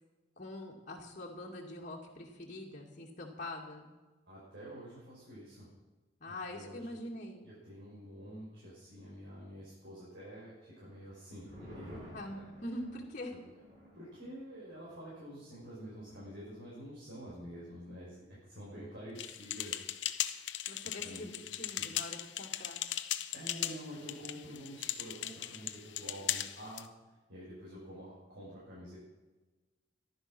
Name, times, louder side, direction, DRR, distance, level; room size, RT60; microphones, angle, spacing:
voice 1, 0.4-3.9 6.2-7.4 12.1-13.3 20.7-22.8, left 1 dB, 40° left, -2 dB, 2.5 m, -44 dB
voice 2, 4.3-5.7 6.3-7.0 7.4-12.1 12.4-12.5 13.3-13.4 13.9-20.1 20.8-21.9 23.3-29.0, equal, 75° right, -8 dB, 5.7 m, -48 dB
sound 1, 10.9-17.8 18.1-18.2 18.6-19.1, equal, 55° right, 6.5 m, -55 dB
sound 2, 19.2-26.9, left 12 dB, 70° left, 0.8 m, -38 dB
14.5 x 12.0 x 6.2 m, 1.2 s
head